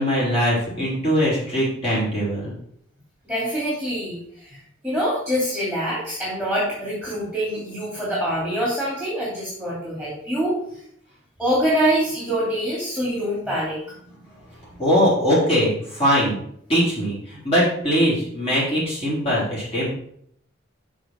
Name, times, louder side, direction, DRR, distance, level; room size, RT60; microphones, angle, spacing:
voice 1, 0.0-2.6 14.8-16.4 16.7-19.9, equal, 30° left, -8 dB, 4.0 m, -21 dB
voice 2, 3.3-4.5 4.8-10.5 11.4-13.8, equal, ahead, -7 dB, 2.8 m, -25 dB
6.4 x 6.3 x 5.8 m, 0.68 s
head